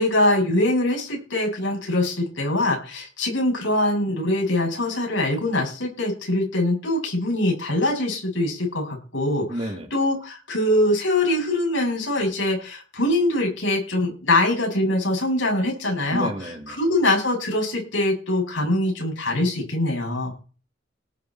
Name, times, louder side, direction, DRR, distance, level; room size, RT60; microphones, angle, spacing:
voice 1, 0.0-9.6 9.9-16.3 16.7-20.3, left 1 dB, 85° left, 1 dB, 7.4 m, -23 dB
voice 2, 9.5-9.9 16.1-16.8, right 1 dB, 30° right, 4 dB, 2.2 m, -31 dB
18.5 x 7.0 x 4.5 m, 0.35 s
head